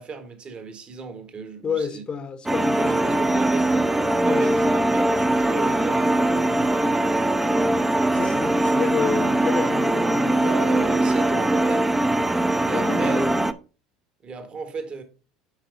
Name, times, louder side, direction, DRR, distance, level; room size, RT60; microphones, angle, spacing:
voice 1, 0.0-2.0 2.8-3.9 4.2-6.9 10.4-11.9 12.6-13.3 14.2-15.0, right 5 dB, 35° right, 1.4 m, -34 dB
voice 2, 1.6-3.2 4.3-4.8 8.0-10.5 12.7-13.4, left 5 dB, 30° left, 0.8 m, -29 dB
sound 1, 2.5-13.5, right 1 dB, 10° right, 0.5 m, -21 dB
8.1 x 4.8 x 3.8 m
hypercardioid pair, 75°, 3 cm